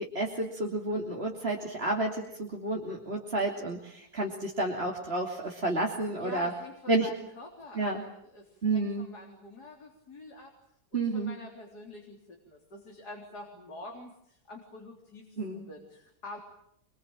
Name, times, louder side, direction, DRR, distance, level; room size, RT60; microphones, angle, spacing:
voice 1, 0.0-6.5 6.9-7.1 7.7-8.0 8.6-9.1 10.9-11.3 15.4-15.6, right 2 dB, 40° right, -1 dB, 3.1 m, -30 dB
voice 2, 6.2-7.9 8.2-10.5 10.9-12.2 12.5-16.4, left 2 dB, 80° left, 0 dB, 4.4 m, -46 dB
27.0 x 23.0 x 9.0 m, 0.73 s
omnidirectional pair, 1.7 m